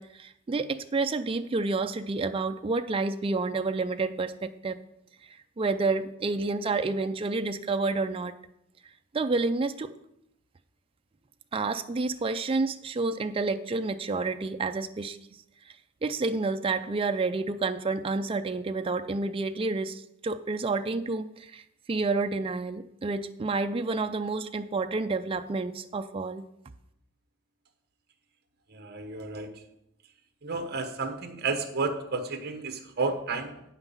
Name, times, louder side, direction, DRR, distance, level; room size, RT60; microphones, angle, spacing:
voice 1, 0.0-4.8 5.3-8.3 9.1-9.9 11.5-15.2 16.0-21.6 21.9-26.4, right 3 dB, 25° right, 8 dB, 0.3 m, -29 dB
voice 2, 28.7-29.5 30.4-33.6, right 3 dB, 45° right, 7 dB, 1.1 m, -32 dB
8.9 x 5.8 x 7.0 m, 0.81 s
head